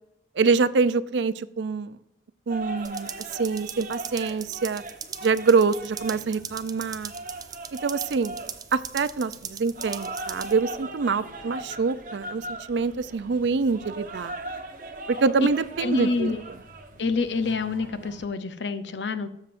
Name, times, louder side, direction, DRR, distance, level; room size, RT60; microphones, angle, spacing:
voice 1, 0.4-2.0 2.5-4.8 5.2-7.1 7.8-8.4 8.7-14.3 15.1-16.3, right 4 dB, 85° right, 16 dB, 0.5 m, -25 dB
sound 1, 2.5-18.2, right 2 dB, 50° right, 1.1 m, -40 dB
sound 2, 2.8-10.5, right 7 dB, 20° right, 0.5 m, -40 dB
voice 2, 15.8-16.4 17.0-19.3, left 3 dB, 85° left, 11 dB, 0.7 m, -27 dB
13.0 x 7.4 x 2.6 m, 0.82 s
head